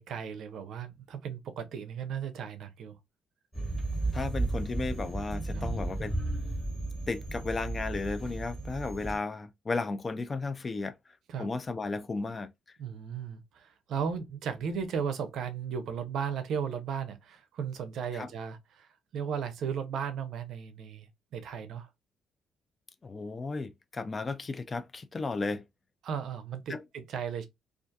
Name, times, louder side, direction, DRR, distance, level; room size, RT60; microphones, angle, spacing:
voice 1, 0.0-3.0 5.5-5.7 11.3-11.5 12.8-21.9 26.0-27.5, right 7 dB, 75° right, 0.5 m, -36 dB
sound 1, 3.5-9.2, right 2 dB, 15° left, 1.3 m, -34 dB
voice 2, 4.1-6.2 7.1-10.9 11.4-12.5 18.1-18.3 23.0-25.6 26.7-26.8, left 3 dB, 30° left, 0.3 m, -34 dB
2.6 x 2.4 x 2.2 m
cardioid pair, 95°, 0 cm